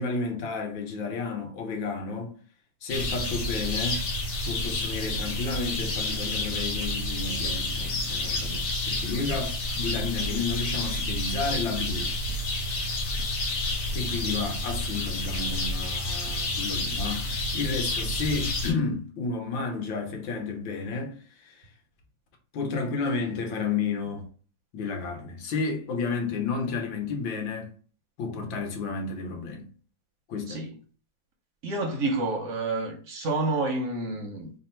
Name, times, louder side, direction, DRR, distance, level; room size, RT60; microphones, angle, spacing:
voice 1, 0.0-2.4 2.8-4.1 4.4-12.2 13.9-21.7 22.5-24.3 24.7-27.7 28.2-29.7 30.3-30.6, left 4 dB, 75° left, 1.6 m, -32 dB
sound 1, 2.9-18.7, left 2 dB, 50° left, 1.2 m, -29 dB
voice 2, 31.6-34.5, right 2 dB, 60° right, 0.8 m, -29 dB
3.6 x 2.2 x 4.3 m
omnidirectional pair, 2.1 m